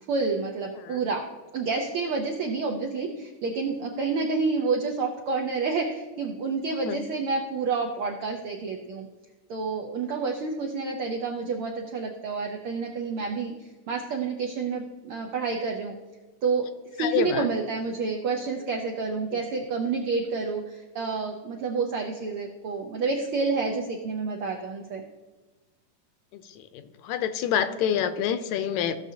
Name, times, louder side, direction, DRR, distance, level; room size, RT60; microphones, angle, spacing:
voice 1, 0.1-1.3 1.5-9.1 9.5-15.9 16.4-16.7 16.9-25.0, right 4 dB, 80° right, 1 dB, 1.2 m, -29 dB
voice 2, 17.0-17.5 26.3-29.0, left 9 dB, 80° left, 11 dB, 1.9 m, -27 dB
15.5 x 6.7 x 2.7 m, 1.2 s
omnidirectional pair, 3.3 m